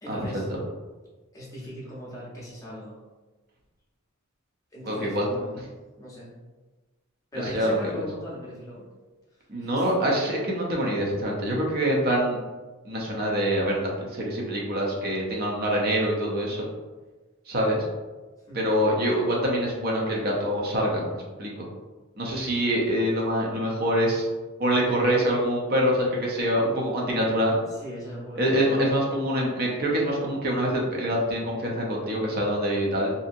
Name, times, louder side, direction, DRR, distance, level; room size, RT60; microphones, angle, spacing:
voice 1, 0.0-0.5 1.3-3.0 4.7-5.6 6.0-6.3 7.3-8.9 9.6-9.7 18.5-18.6 27.8-29.0, equal, 15° left, -6 dB, 0.6 m, -38 dB
voice 2, 4.8-5.3 7.4-8.0 9.5-12.4 12.8-16.7 17.5-17.9 18.5-21.7 22.2-24.3 24.6-27.6 28.4-33.1, equal, 45° right, -2 dB, 0.5 m, -25 dB
2.7 x 2.6 x 2.5 m, 1.3 s
head